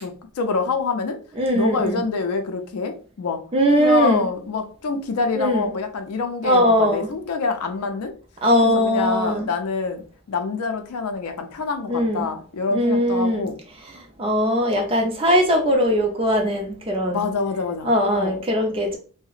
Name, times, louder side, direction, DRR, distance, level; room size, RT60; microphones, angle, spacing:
voice 1, 0.0-1.2 1.5-3.4 3.8-8.1 8.6-13.6 17.1-18.5, left 4 dB, 75° left, 7 dB, 0.4 m, -26 dB
voice 2, 1.4-2.0 3.5-4.3 5.4-5.7 6.4-7.1 8.4-9.5 11.9-12.3 12.7-13.5 14.2-17.2 17.8-19.0, equal, 25° right, 2 dB, 0.5 m, -20 dB
2.7 x 2.0 x 2.3 m, 0.39 s
head